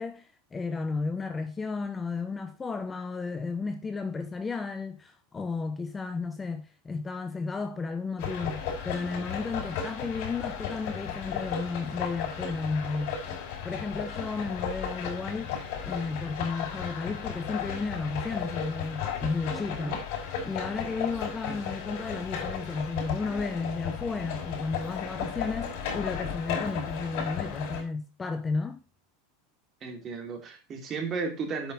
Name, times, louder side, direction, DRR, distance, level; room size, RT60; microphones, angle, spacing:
voice 1, 0.0-13.2 13.6-15.5 15.8-20.0 20.4-28.8, left 4 dB, 15° left, 0.8 m, -33 dB
sound 1, 8.2-27.8, left 7 dB, 60° left, 4.9 m, -35 dB
voice 2, 29.8-31.7, right 4 dB, 30° right, 2.8 m, -34 dB
8.4 x 5.8 x 5.3 m
supercardioid pair, 135°, 0 cm